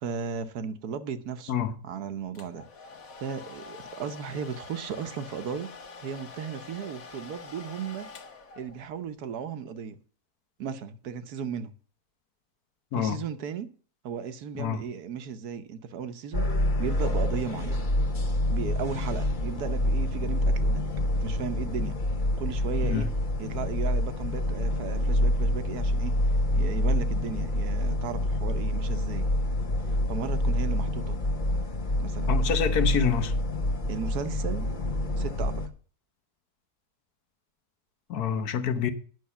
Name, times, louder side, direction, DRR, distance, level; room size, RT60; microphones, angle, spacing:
voice 1, 0.0-1.5 1.8-2.6 3.2-5.7 6.0-8.1 8.6-10.0 10.6-11.7 12.9-13.7 14.0-16.5 16.8-17.9 18.5-22.0 22.4-23.1 23.4-26.2 26.5-29.3 30.1-31.2 32.0-32.3 33.9-34.7 35.2-35.5, right 7 dB, 75° right, 1.4 m, -35 dB
Domestic sounds home sounds, 2.3-9.0, left 4 dB, 65° left, 1.6 m, -46 dB
voice 2, 12.9-13.2 14.5-14.8 22.8-23.1 32.3-33.3 38.1-38.9, left 7 dB, 80° left, 1.5 m, -27 dB
sound 1, 16.3-35.7, left 1 dB, 35° left, 1.0 m, -27 dB
9.6 x 6.4 x 6.9 m
omnidirectional pair, 1.6 m